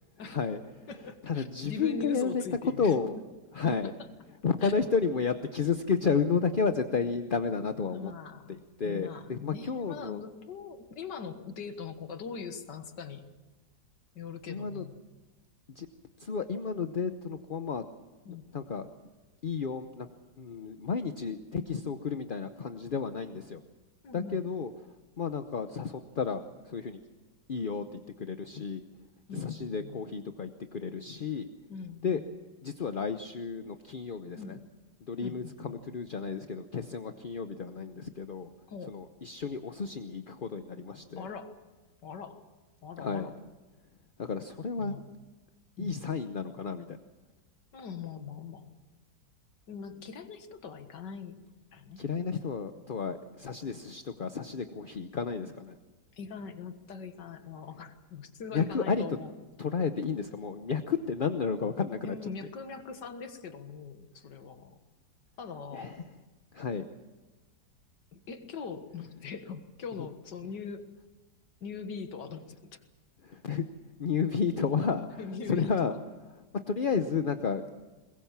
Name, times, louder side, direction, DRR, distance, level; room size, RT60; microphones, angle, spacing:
voice 1, 0.2-0.9 1.2-2.4 2.8-3.1 3.5-3.9 4.4-8.1 8.5-10.2 14.5-14.8 15.8-15.9 16.2-17.8 18.5-18.9 19.4-20.1 20.4-23.6 24.1-24.7 25.2-27.0 27.5-28.8 29.3-31.5 32.0-32.2 32.6-34.6 35.1-38.5 38.9-41.3 43.0-43.3 44.2-45.0 45.8-47.0 52.0-55.7 58.5-59.0 59.6-62.2 65.7-66.0 66.5-66.8 73.2-73.6 74.0-75.1 75.5-75.9 76.5-77.6, left 5 dB, 40° left, 8 dB, 0.7 m, -32 dB
voice 2, 0.9-3.0 3.6-3.9 4.6-4.7 7.9-13.2 14.2-15.0 18.3-18.4 24.0-24.5 29.3-30.0 31.7-32.3 34.3-34.6 35.2-35.8 38.7-39.0 41.2-41.5 42.0-42.5 42.8-43.4 44.8-45.1 45.8-46.0 47.7-48.7 49.7-51.4 51.7-52.0 56.1-59.3 62.0-64.8 65.4-66.0 68.1-70.9 71.6-72.8 75.2-76.0, left 5 dB, 80° left, 8 dB, 2.1 m, -42 dB
22.5 x 20.5 x 7.3 m, 1.2 s
omnidirectional pair, 1.9 m